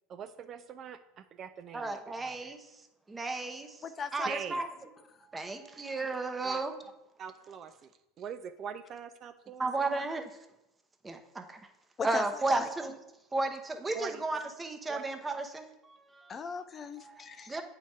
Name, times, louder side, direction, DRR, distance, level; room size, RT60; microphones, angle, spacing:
voice 1, 0.1-2.0 4.2-4.6 6.4-6.6 7.2-7.9 8.2-9.9 13.9-14.2 14.9-15.0, right 7 dB, 40° right, 9 dB, 0.3 m, -42 dB
voice 2, 1.7-2.7 3.1-3.8 4.1-4.6 5.3-6.7 9.6-10.2 11.0-11.6 12.0-13.0 13.3-16.3 17.1-17.6, right 2 dB, 15° right, 6 dB, 0.7 m, -34 dB
voice 3, 3.8-4.3 12.0-12.2 12.6-12.7 16.3-17.6, left 6 dB, 30° left, 11 dB, 0.3 m, -38 dB
8.4 x 2.9 x 4.6 m, 0.90 s
hypercardioid pair, 85°, 0 cm